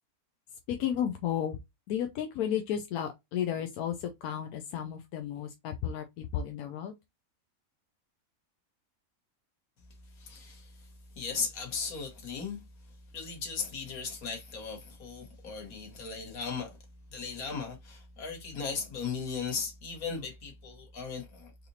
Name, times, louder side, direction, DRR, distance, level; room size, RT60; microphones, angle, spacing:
voice 1, 0.7-1.6 1.9-6.9, left 9 dB, 90° left, 1.1 m, -33 dB
voice 2, 10.1-12.6 13.1-16.8 17.1-21.7, left 5 dB, 75° left, 1.7 m, -37 dB
4.0 x 2.8 x 2.7 m
omnidirectional pair, 1.5 m